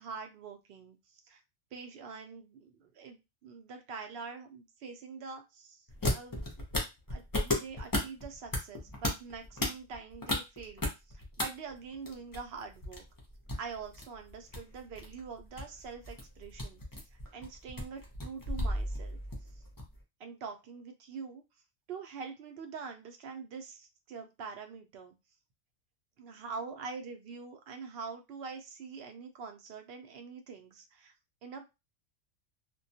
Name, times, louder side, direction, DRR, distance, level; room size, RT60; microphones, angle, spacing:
voice 1, 0.0-1.4 1.7-6.7 7.1-13.0 13.6-16.8 17.1-19.2 19.5-19.6 20.2-21.4 21.9-25.1 26.2-31.1 31.4-31.7, right 5 dB, 65° right, 5 dB, 0.7 m, -45 dB
sound 1, 5.9-11.4 11.7-20.0, left 1 dB, 30° left, 0.4 m, -35 dB
2.2 x 2.2 x 2.6 m, 0.24 s
omnidirectional pair, 1.3 m